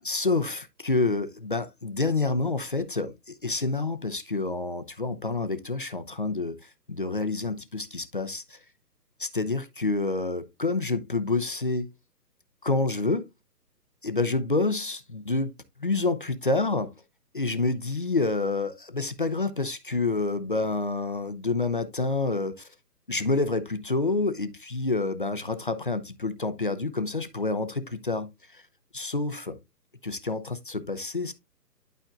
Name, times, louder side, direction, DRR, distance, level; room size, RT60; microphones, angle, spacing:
voice 1, 0.0-8.6 9.2-11.9 12.6-13.3 14.0-15.5 15.8-16.9 17.3-22.7 23.1-28.6 28.9-29.6 30.0-31.3, left 3 dB, 30° left, 0.6 m, -28 dB
11.5 x 4.3 x 2.5 m
hypercardioid pair, 160°, 50 cm